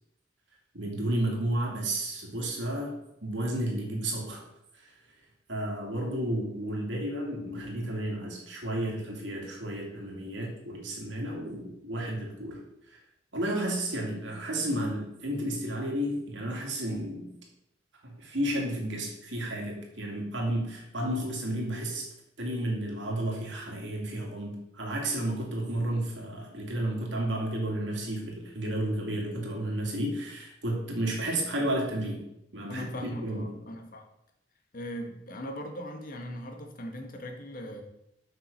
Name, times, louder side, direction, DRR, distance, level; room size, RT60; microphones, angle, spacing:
voice 1, 0.7-3.0 3.2-4.4 4.8-4.9 5.5-12.6 13.3-17.3 18.0-22.1 22.4-32.2 32.5-33.5, right 1 dB, 75° right, -1 dB, 2.4 m, -32 dB
voice 2, 32.7-34.0 34.7-37.8, equal, 50° left, 3 dB, 1.4 m, -39 dB
7.4 x 5.9 x 5.2 m, 0.83 s
head